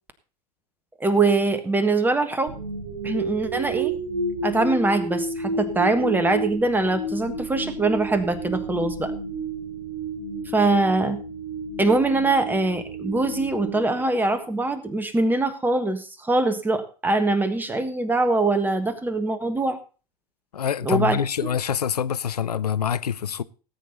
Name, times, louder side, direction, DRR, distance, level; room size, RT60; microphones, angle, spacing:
voice 1, 1.0-2.5 3.0-3.9 4.4-9.1 10.5-11.2 11.8-19.8 20.8-21.2, right 2 dB, 10° right, 1.4 m, -23 dB
sound 1, 2.5-14.6, right 2 dB, 50° right, 4.2 m, -31 dB
voice 2, 20.5-23.4, left 8 dB, 75° left, 0.6 m, -25 dB
18.0 x 8.6 x 4.0 m
figure-of-eight pair, 90°, 20 cm